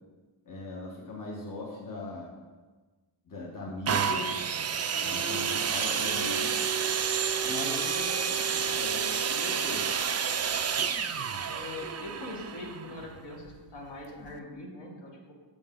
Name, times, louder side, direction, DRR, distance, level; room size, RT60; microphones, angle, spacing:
voice 1, 0.4-2.3 3.3-4.3 5.0-6.6 7.4-9.9, left 2 dB, 45° left, -3 dB, 1.4 m, -39 dB
sound 1, 3.9-13.6 14.3-14.4, right 7 dB, 35° right, 0.4 m, -30 dB
voice 2, 11.4-15.3, left 2 dB, 60° left, -1 dB, 1.6 m, -42 dB
6.9 x 6.6 x 3.8 m, 1.3 s
wide cardioid pair, 110°, 46 cm